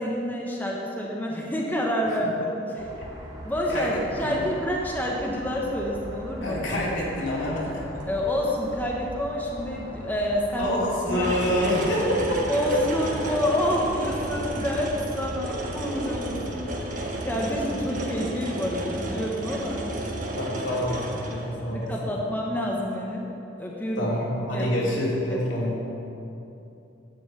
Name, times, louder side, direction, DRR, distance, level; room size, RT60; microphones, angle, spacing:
voice 1, 0.0-2.9 3.4-6.6 8.1-10.7 11.0-11.3 11.7-11.8 12.5-19.8 21.7-23.3 23.6-24.1 24.5-24.9 25.3-25.4, equal, 10° left, -2 dB, 1.1 m, -28 dB
sound 1, 2.8-17.7, equal, 25° right, 2.5 m, -41 dB
voice 2, 3.7-4.4 6.4-7.8 10.6-12.4 12.7-12.8 20.3-22.1 24.0-25.8, equal, 80° left, -5 dB, 2.6 m, -27 dB
sound 2, 11.1-21.8 22.9-23.0, right 1 dB, 45° right, 1.1 m, -32 dB
11.0 x 4.7 x 8.3 m, 2.9 s
head